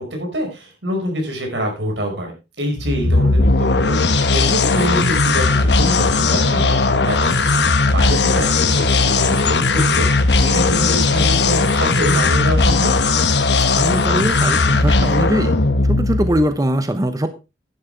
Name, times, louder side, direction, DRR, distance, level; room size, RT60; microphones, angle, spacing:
voice 1, 0.0-12.9, equal, 85° right, 2 dB, 5.3 m, -26 dB
sound 1, 2.7-16.5, left 3 dB, 70° left, 1.2 m, -17 dB
voice 2, 13.7-15.6 15.8-17.3, right 1 dB, 20° right, 9 dB, 0.9 m, -21 dB
11.0 x 11.0 x 3.4 m, 0.27 s
head